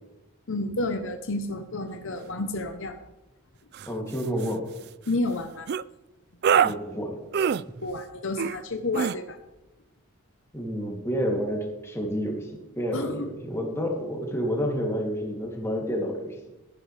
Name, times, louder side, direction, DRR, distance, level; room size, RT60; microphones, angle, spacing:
voice 1, 0.5-3.0 5.1-5.7 7.8-9.4 12.9-13.3, left 2 dB, 65° left, 7 dB, 0.9 m, -30 dB
sound 1, 3.7-3.9 4.2-4.5 5.7-5.8 6.4-6.7 7.3-7.6 8.4-8.6 8.9-9.1, right 8 dB, 50° right, 0.3 m, -24 dB
voice 2, 3.9-4.7 6.6-7.2 10.5-12.5 12.8-16.3, equal, 15° left, -1 dB, 2.8 m, -29 dB
15.0 x 11.0 x 3.4 m, 1.0 s
head